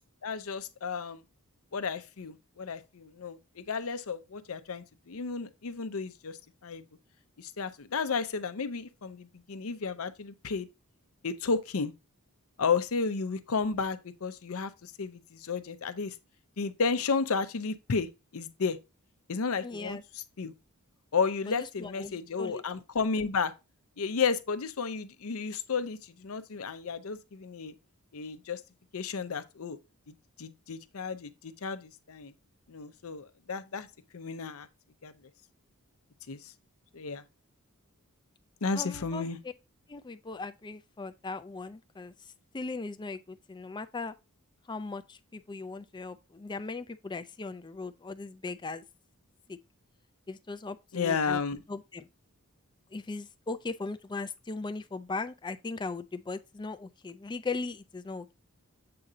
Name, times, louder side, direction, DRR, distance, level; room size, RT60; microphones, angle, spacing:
voice 1, 0.2-1.2 1.7-6.4 6.6-6.8 7.4-10.7 11.2-11.9 12.6-16.1 16.6-18.1 18.3-18.8 19.3-20.0 20.4-20.5 21.1-23.5 24.0-27.7 28.1-28.6 28.9-29.8 30.1-32.3 32.7-33.9 34.1-34.7 35.0-35.1 36.3-36.5 36.9-37.2 38.6-39.4 50.9-51.6, left 5 dB, 70° left, 0.6 m, -32 dB
voice 2, 19.6-20.0 21.5-22.6 38.7-39.5 39.9-44.1 44.7-48.8 49.5-49.6 50.3-51.4 51.7-52.1 52.9-58.3, left 3 dB, 20° left, 0.4 m, -38 dB
7.7 x 2.8 x 4.9 m
head